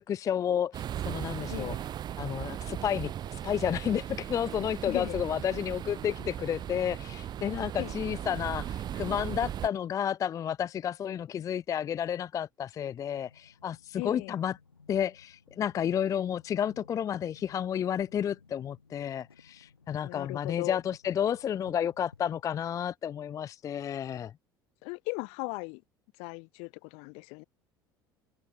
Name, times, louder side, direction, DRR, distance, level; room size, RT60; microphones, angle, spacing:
voice 1, 0.0-1.7 2.2-14.6 14.9-24.3, left 9 dB, 25° left, 0.4 m, -31 dB
sound 1, 0.7-9.7, right 10 dB, 35° right, 0.7 m, -37 dB
voice 2, 1.5-1.8 4.9-5.2 7.8-7.9 14.0-14.3 20.0-20.8 24.8-25.8 26.2-27.4, left 35 dB, 55° left, 0.8 m, -37 dB
sound 2, 13.1-22.9, left 5 dB, 85° left, 3.2 m, -59 dB
figure-of-eight pair, 65°, 12 cm